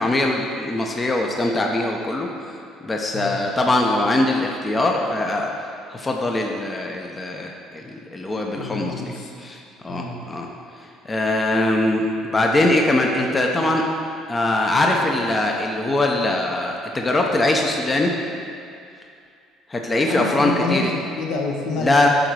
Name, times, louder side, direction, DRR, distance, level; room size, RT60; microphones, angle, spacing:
voice 1, 0.0-2.3 2.8-5.5 5.9-8.9 9.4-9.6 9.8-10.5 11.1-13.8 14.3-18.1 19.7-20.9 21.8-22.1, left 2 dB, 20° left, 1 dB, 0.6 m, -21 dB
voice 2, 8.5-9.3 9.9-10.2 20.1-22.1, left 3 dB, 70° left, 1 dB, 1.0 m, -28 dB
8.9 x 3.9 x 4.7 m, 2.4 s
cardioid pair, 120°, 0 cm